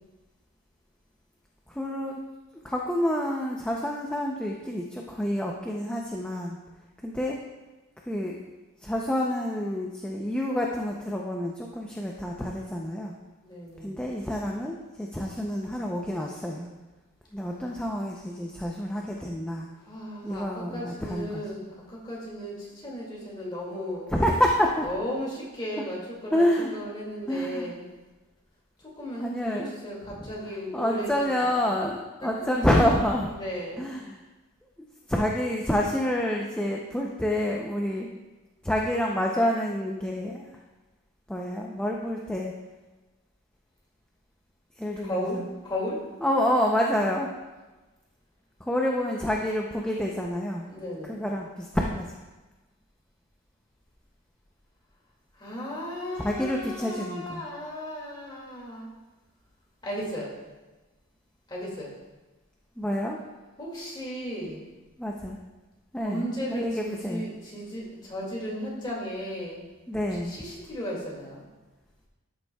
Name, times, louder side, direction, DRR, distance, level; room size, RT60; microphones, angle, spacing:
voice 1, 1.7-2.2 2.6-6.6 7.0-7.4 8.1-8.4 8.8-13.1 13.8-16.7 17.3-19.7 20.2-21.4 24.1-24.9 26.3-26.7 27.3-27.7 29.2-29.7 30.2-30.3 30.7-33.3 33.8-34.2 35.1-38.1 38.6-40.5 41.3-42.5 44.8-45.5 46.2-47.3 48.6-50.7 51.1-52.1 56.2-57.4 62.8-63.2 65.0-65.4 65.9-67.2 69.9-70.3, equal, 5° left, -1 dB, 0.5 m, -28 dB
voice 2, 13.4-14.1 19.8-24.1 24.8-27.8 29.0-31.5 32.2-32.5 33.3-33.9 45.0-46.0 50.6-51.2 55.3-58.9 59.8-60.3 61.5-61.9 63.6-64.6 66.0-69.6 70.0-71.4, equal, 20° left, -4 dB, 2.1 m, -35 dB
13.0 x 6.9 x 2.2 m, 1.2 s
head